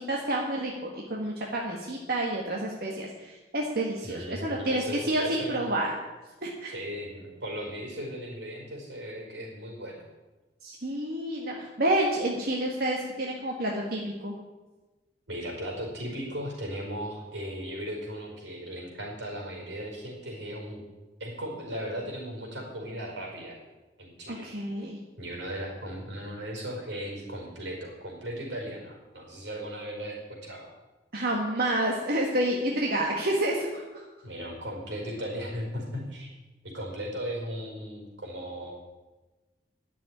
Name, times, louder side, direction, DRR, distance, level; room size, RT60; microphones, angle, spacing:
voice 1, 0.0-5.9 6.4-6.7 10.6-14.3 24.3-25.0 31.1-34.0, right 1 dB, 60° right, -2 dB, 1.7 m, -29 dB
voice 2, 4.0-5.7 6.7-10.0 15.3-20.8 21.2-23.6 24.0-24.5 25.2-30.7 34.2-36.3 36.6-38.7, equal, 90° right, 0 dB, 5.0 m, -37 dB
11.0 x 7.6 x 9.8 m, 1.2 s
head